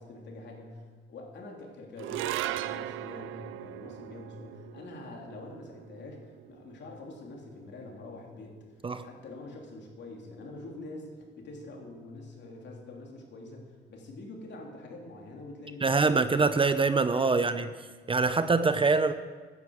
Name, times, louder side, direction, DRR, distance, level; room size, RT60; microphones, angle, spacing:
voice 1, 0.0-8.5 9.0-16.4 17.3-17.7, left 2 dB, 60° left, 0 dB, 3.1 m, -45 dB
sound 1, 2.0-8.5, right 14 dB, 80° right, 0.5 m, -39 dB
voice 2, 15.8-17.7 18.1-19.1, right 4 dB, 25° right, 11 dB, 0.6 m, -24 dB
10.5 x 9.9 x 7.2 m, 1.4 s
cardioid pair, 90°, 20 cm